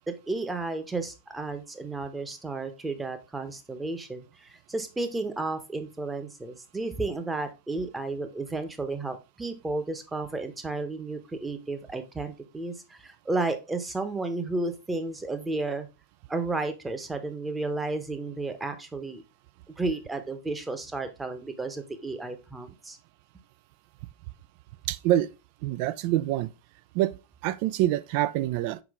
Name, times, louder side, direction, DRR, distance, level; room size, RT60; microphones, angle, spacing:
voice 1, 0.1-15.9 16.3-19.2 19.8-23.0, right 3 dB, 10° right, 1.0 m, -32 dB
voice 2, 24.9-25.3 25.6-26.5 26.9-27.1 27.4-28.8, right 14 dB, 45° right, 0.4 m, -26 dB
6.0 x 4.7 x 3.5 m
figure-of-eight pair, 90°, 0 cm